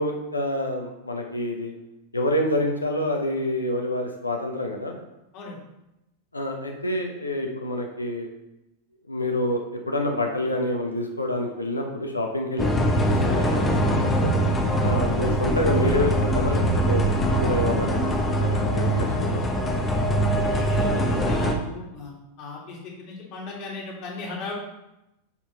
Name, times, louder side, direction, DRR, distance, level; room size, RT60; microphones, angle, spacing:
voice 1, 0.0-1.7 2.1-4.9 6.3-8.3 9.1-14.3 14.8-17.0 17.4-19.5, left 1 dB, 80° left, 2 dB, 0.9 m, -27 dB
sound 1, 12.6-21.5, equal, 15° left, 0.9 m, -22 dB
voice 2, 20.5-24.5, left 3 dB, 40° left, -2 dB, 2.0 m, -37 dB
7.2 x 4.4 x 4.0 m, 0.90 s
figure-of-eight pair, 90°, 0 cm